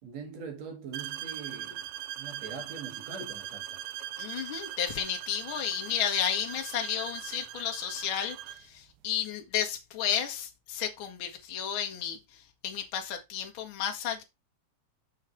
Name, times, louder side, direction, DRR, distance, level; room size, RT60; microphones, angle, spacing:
voice 1, 0.0-1.9 2.2-3.8, right 5 dB, 60° right, 3.0 m, -42 dB
sound 1, 0.9-8.7, right 12 dB, 80° right, 1.8 m, -40 dB
voice 2, 4.2-8.4 8.7-14.2, left 9 dB, 50° left, 2.0 m, -32 dB
6.5 x 5.7 x 4.5 m
omnidirectional pair, 3.5 m